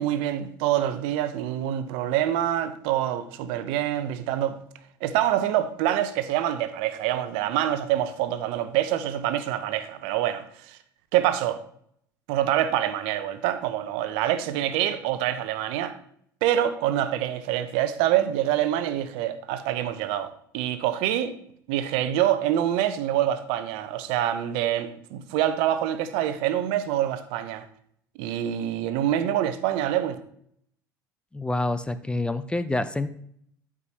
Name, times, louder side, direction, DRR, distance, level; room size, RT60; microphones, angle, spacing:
voice 1, 0.0-4.6 5.0-10.8 11.1-11.6 12.3-16.0 16.4-21.3 21.7-27.6 28.2-30.2, right 11 dB, 65° right, 0.8 m, -26 dB
voice 2, 31.3-33.1, left 2 dB, 10° left, 0.5 m, -27 dB
12.0 x 4.9 x 2.9 m
hypercardioid pair, 70°, 10 cm